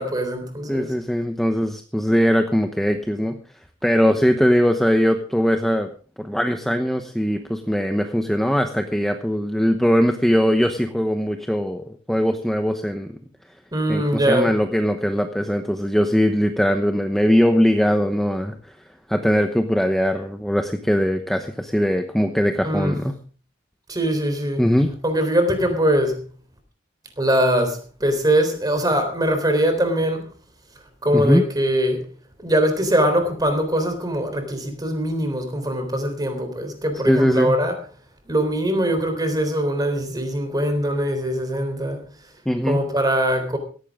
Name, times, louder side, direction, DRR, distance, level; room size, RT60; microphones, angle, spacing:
voice 1, 0.0-0.9 13.7-14.5 22.6-23.0 23.9-24.6 25.0-26.2 27.2-30.3 31.0-32.0 32.4-37.7 38.3-42.0 42.7-43.6, equal, 20° right, 3.7 m, -22 dB
voice 2, 0.7-3.4 3.8-5.9 6.2-13.1 13.9-18.5 19.1-23.1 24.6-24.9 31.1-31.4 37.1-37.5 42.5-42.9, equal, ahead, 0.9 m, -20 dB
17.5 x 15.0 x 3.7 m
head